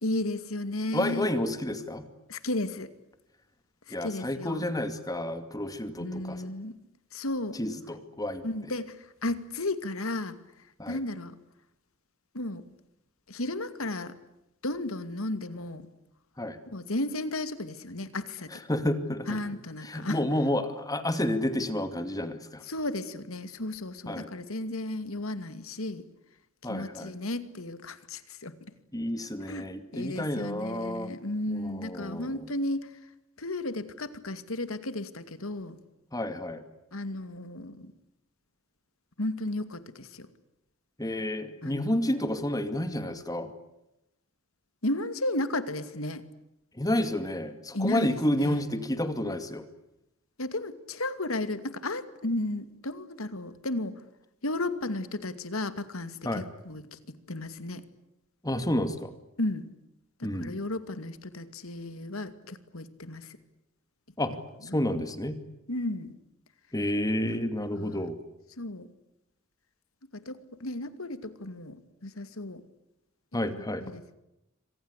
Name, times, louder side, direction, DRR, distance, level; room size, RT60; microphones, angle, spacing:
voice 1, 0.0-1.3 2.3-2.9 3.9-4.7 6.0-6.7 7.1-7.6 8.4-8.9 9.2-10.4 10.9-11.3 12.3-12.6 13.3-14.1 14.6-15.9 16.7-18.6 19.3-20.2 22.7-26.0 26.7-28.5 29.5-32.9 33.4-35.8 36.9-37.9 39.2-40.3 41.6-42.0 44.8-46.2 47.7-48.6 50.4-53.9 54.4-57.8 59.4-59.7 60.2-63.4 64.6-64.8 65.7-66.1 67.2-67.4 67.7-68.1 68.6-68.9 70.1-72.6 73.5-74.0, left 1 dB, 85° left, 11 dB, 2.5 m, -34 dB
voice 2, 0.9-2.0 3.9-6.5 7.6-8.4 10.8-11.0 16.4-16.6 18.7-19.4 19.8-22.6 24.1-24.3 26.6-27.1 28.9-31.1 31.5-32.4 36.1-36.6 41.0-43.5 46.8-49.6 56.2-56.4 58.4-59.1 60.2-60.5 64.2-64.3 64.7-65.4 66.7-68.2 73.3-73.8, left 1 dB, 20° left, 9 dB, 2.4 m, -30 dB
28.0 x 25.5 x 8.3 m, 0.87 s
head